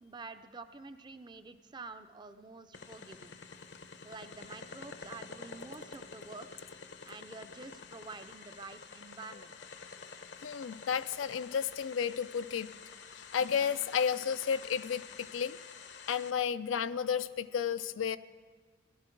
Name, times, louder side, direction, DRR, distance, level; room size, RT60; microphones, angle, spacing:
voice 1, 0.0-3.3 4.0-6.7 7.0-9.5, right 3 dB, 20° right, 10 dB, 0.5 m, -48 dB
sound 1, 2.7-16.3, left 5 dB, 65° left, 0.9 m, -49 dB
voice 2, 10.4-12.7 13.2-15.6 16.1-18.2, left 7 dB, 80° left, 13 dB, 0.4 m, -32 dB
16.0 x 12.5 x 4.5 m, 1.5 s
head